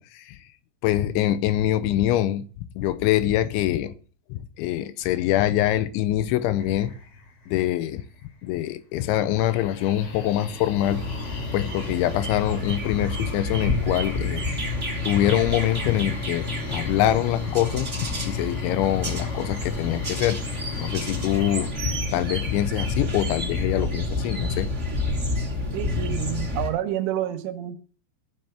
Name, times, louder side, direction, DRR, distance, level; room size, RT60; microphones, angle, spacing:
voice 1, 0.8-3.9 4.3-6.9 7.5-8.0 8.4-11.0 11.5-14.4 14.7-17.9 18.2-20.4 20.8-24.7, left 13 dB, 80° left, 3.0 m, -24 dB
sound 1, 6.6-8.7 9.0-21.7, left 3 dB, 50° left, 2.6 m, -41 dB
sound 2, 10.8-26.7, left 2 dB, 20° right, 2.5 m, -29 dB
voice 2, 25.7-27.8, right 12 dB, 85° right, 3.7 m, -29 dB
14.5 x 5.7 x 7.9 m
omnidirectional pair, 5.5 m